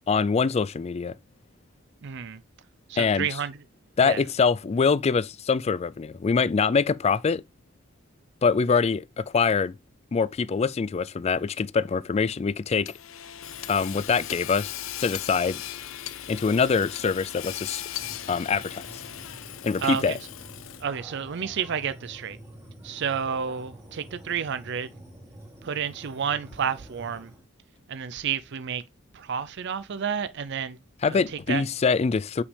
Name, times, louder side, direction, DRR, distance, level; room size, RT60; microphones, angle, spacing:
voice 1, 0.1-1.1 3.0-3.3 4.0-7.4 8.4-9.7 10.1-12.9 13.7-15.6 16.3-17.8 18.3-19.0 19.6-20.1 31.0-32.4, left 5 dB, 30° left, 0.3 m, -24 dB
voice 2, 2.0-2.4 2.9-3.6 4.0-4.2 19.8-20.2 20.8-22.4 22.8-24.9 25.6-27.3 27.9-28.8 29.1-30.8 31.1-31.6, right 7 dB, 60° right, 0.5 m, -30 dB
Hammer / Sawing, 12.8-21.0, left 11 dB, 80° left, 0.6 m, -38 dB
sound 1, 17.9-27.4, right 1 dB, 15° right, 1.6 m, -47 dB
8.3 x 5.1 x 3.3 m
head